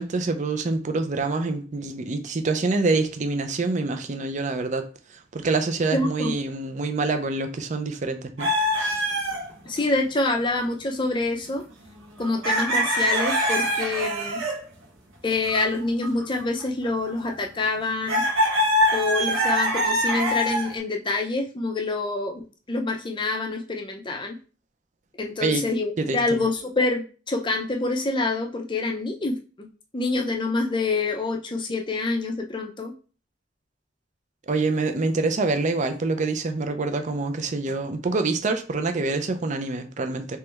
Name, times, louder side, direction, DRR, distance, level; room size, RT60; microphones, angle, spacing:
voice 1, 0.0-4.9 5.3-8.5 8.8-9.1 25.4-25.6 26.0-26.4 34.5-40.4, right 3 dB, 40° right, 0.4 m, -26 dB
voice 2, 5.9-6.3 9.7-11.6 12.2-14.4 15.2-18.2 18.9-24.4 25.2-29.7 29.9-32.9, left 3 dB, 25° left, 0.5 m, -26 dB
sound 1, 8.4-9.7 11.0-11.2 11.5-11.6 12.2-14.6 15.3-15.6 16.0-17.3 18.1-20.8, equal, 85° right, 1.1 m, -24 dB
3.3 x 3.0 x 3.3 m
head